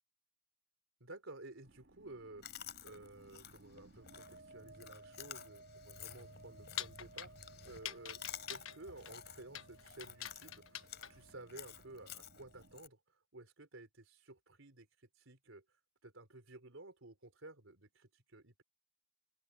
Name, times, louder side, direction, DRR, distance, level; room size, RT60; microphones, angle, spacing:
voice 1, 1.0-2.5 2.8-8.2 8.5-13.0 13.3-14.9 15.2-15.6 16.0-18.6, right 2 dB, 75° right, 3.8 m, -54 dB
sound 1, 1.6-12.8, right 2 dB, 60° right, 2.8 m, -61 dB
Chewing mastication, 2.4-12.9, left 8 dB, 55° left, 5.2 m, -53 dB
sound 2, 6.1-11.3, left 11 dB, 80° left, 1.3 m, -47 dB
open air
head